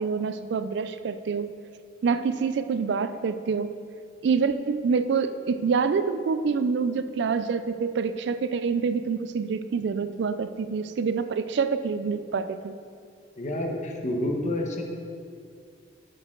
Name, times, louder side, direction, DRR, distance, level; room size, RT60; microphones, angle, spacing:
voice 1, 0.0-1.5 2.0-3.7 4.2-12.7, right 5 dB, 70° right, 11 dB, 0.4 m, -26 dB
voice 2, 13.4-14.8, left 1 dB, 40° left, 2 dB, 1.0 m, -29 dB
8.8 x 6.4 x 3.8 m, 2.3 s
head